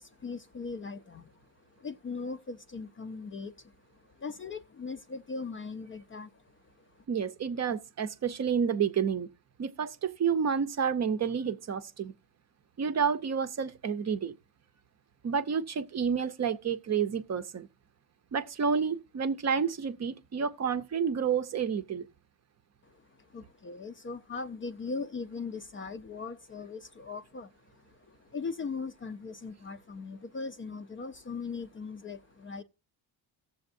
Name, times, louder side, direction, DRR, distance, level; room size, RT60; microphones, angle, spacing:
voice 1, 0.0-1.3 1.8-3.7 4.1-6.4 22.9-32.6, left 4 dB, 30° left, 0.4 m, -39 dB
voice 2, 7.1-9.3 9.6-12.1 12.8-14.3 15.2-17.7 18.3-22.1, right 6 dB, 35° right, 0.6 m, -30 dB
17.0 x 7.0 x 2.6 m
cardioid pair, 90°, 44 cm